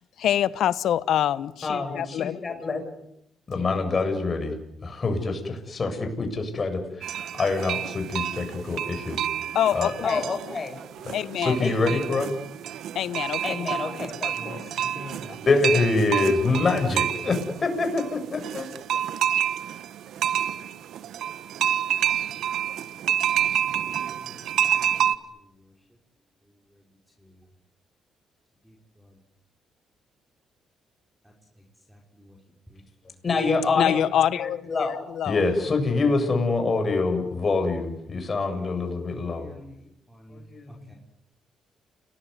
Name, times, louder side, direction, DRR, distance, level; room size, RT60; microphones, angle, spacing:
voice 1, 0.0-2.6 9.5-10.3 11.1-11.6 12.9-13.4 14.4-14.7 33.8-35.4, left 10 dB, 75° left, 1.2 m, -25 dB
voice 2, 1.6-2.9 3.5-9.2 9.7-12.3 13.4-14.3 15.3-18.7 33.2-34.0 34.3-39.5 40.3-40.9, left 3 dB, 35° left, 7.7 m, -26 dB
sound 1, 7.0-25.2, right 10 dB, 75° right, 1.4 m, -29 dB
voice 3, 14.9-15.3 23.9-24.2 24.9-25.0 39.4-39.7 40.1-40.4 40.9-41.0, equal, 5° right, 5.7 m, -44 dB
29.5 x 20.0 x 9.8 m
cardioid pair, 90°, 0 cm